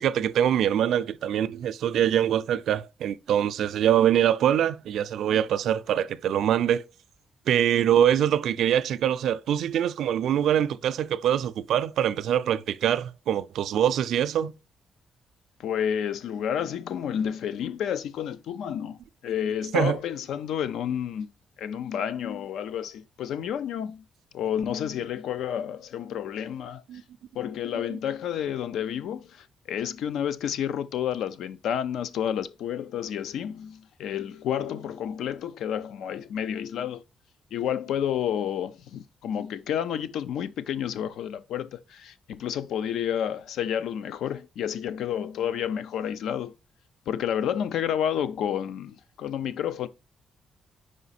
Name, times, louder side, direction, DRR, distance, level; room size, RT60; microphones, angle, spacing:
voice 1, 0.0-6.8 7.5-14.5 19.7-20.0 26.9-27.0 27.9-28.0, right 10 dB, 80° right, 0.4 m, -24 dB
voice 2, 15.6-21.3 21.6-24.0 24.3-26.8 27.3-37.0 37.5-46.6 47.1-49.9, left 9 dB, 85° left, 0.5 m, -30 dB
5.0 x 5.0 x 4.1 m
cardioid pair, 120°, 0 cm